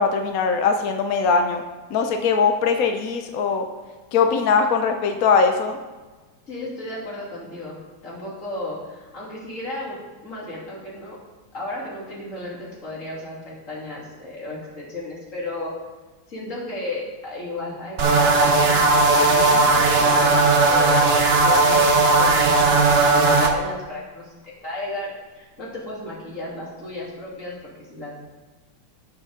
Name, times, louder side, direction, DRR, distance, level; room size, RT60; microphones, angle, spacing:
voice 1, 0.0-1.6 1.9-3.7 4.1-5.8, left 5 dB, 70° left, 5 dB, 0.8 m, -20 dB
voice 2, 6.5-10.0 10.2-11.2 11.5-15.7 16.3-21.1 21.4-24.3 24.6-28.2, left 2 dB, 35° left, -6 dB, 3.6 m, -34 dB
sound 1, 18.0-23.5, right 3 dB, 55° right, 0.7 m, -17 dB
18.0 x 6.7 x 3.8 m, 1.2 s
omnidirectional pair, 2.4 m